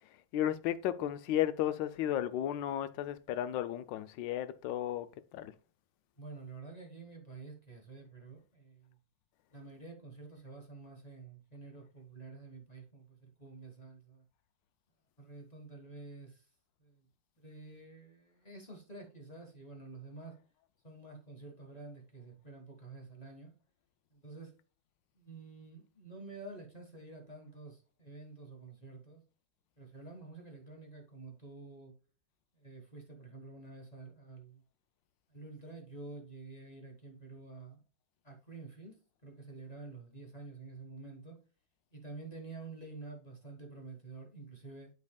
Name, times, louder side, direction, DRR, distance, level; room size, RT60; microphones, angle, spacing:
voice 1, 0.3-5.5, left 11 dB, 80° left, 1.3 m, -34 dB
voice 2, 6.2-9.0 9.5-14.2 15.2-16.4 16.8-17.1 17.4-20.3 20.8-23.5 24.1-24.5 25.1-29.2 29.8-31.9 32.5-34.6 35.3-37.8 38.2-41.4 41.9-44.9, right 3 dB, 25° left, 1.4 m, -49 dB
12.0 x 4.1 x 2.2 m
omnidirectional pair, 2.0 m